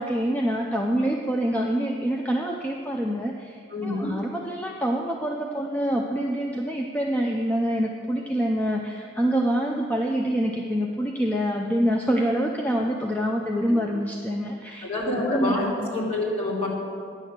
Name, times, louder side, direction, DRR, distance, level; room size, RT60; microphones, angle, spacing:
voice 1, 0.0-14.9 15.3-15.9, equal, 10° left, 0 dB, 0.5 m, -26 dB
voice 2, 3.7-4.1 13.7-13.8 14.8-15.7 15.9-16.7, left 2 dB, 35° left, -5 dB, 2.8 m, -27 dB
10.0 x 6.3 x 7.3 m, 2.3 s
head